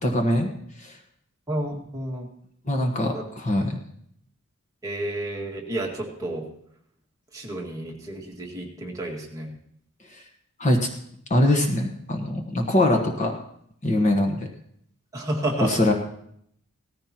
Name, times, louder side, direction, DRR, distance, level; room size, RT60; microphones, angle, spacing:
voice 1, 0.0-0.5 0.8-0.9 2.7-3.8 10.6-10.8 11.3-13.3 13.8-14.4 15.6-15.9, left 1 dB, 35° left, 3 dB, 1.3 m, -22 dB
voice 2, 1.5-2.3 3.1-3.2 4.8-6.5 7.3-9.5 15.1-15.8, right 1 dB, 15° right, -2 dB, 2.0 m, -30 dB
17.5 x 14.0 x 3.0 m, 0.70 s
head